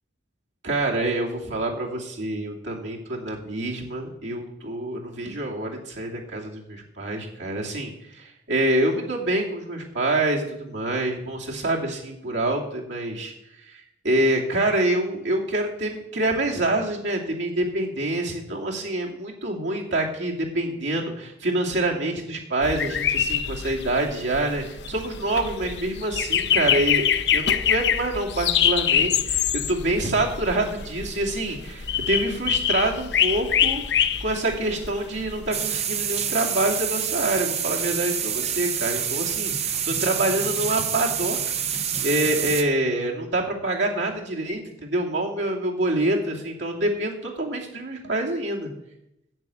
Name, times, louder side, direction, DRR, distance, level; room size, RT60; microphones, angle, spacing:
voice 1, 0.6-13.3 13.7-27.1 27.3-29.4 29.7-33.8 34.2-41.4 42.0-48.7, right 1 dB, 80° right, -1 dB, 2.7 m, -26 dB
sound 1, 22.6-35.5, left 9 dB, 65° left, 0.7 m, -25 dB
sound 2, 35.5-42.6, right 8 dB, 35° right, 0.9 m, -27 dB
10.5 x 7.8 x 8.4 m, 0.84 s
head